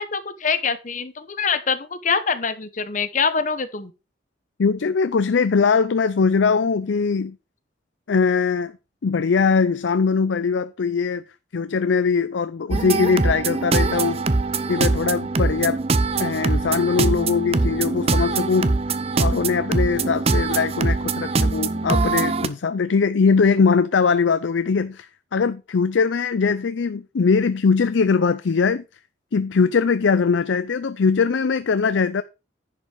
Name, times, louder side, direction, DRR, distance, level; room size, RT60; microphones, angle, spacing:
voice 1, 0.0-3.9, left 5 dB, 40° left, 0.9 m, -24 dB
voice 2, 4.6-7.4 8.1-8.7 9.0-11.2 11.5-14.2 14.7-15.8 16.2-18.7 19.2-28.8 29.3-32.2, left 5 dB, 80° left, 0.5 m, -21 dB
sound 1, 12.7-22.5, right 3 dB, 30° right, 0.6 m, -22 dB
10.5 x 5.3 x 4.9 m
head